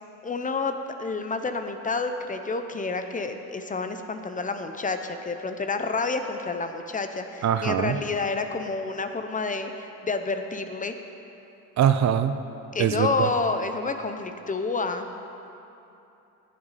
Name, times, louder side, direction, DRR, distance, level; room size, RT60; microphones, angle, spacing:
voice 1, 0.2-11.0 12.7-15.1, left 3 dB, 25° left, 7 dB, 0.7 m, -29 dB
voice 2, 7.4-8.0 11.8-12.4 12.8-13.3, right 9 dB, 50° right, 10 dB, 0.6 m, -22 dB
18.5 x 7.9 x 4.2 m, 2.8 s
cardioid pair, 125°, 35 cm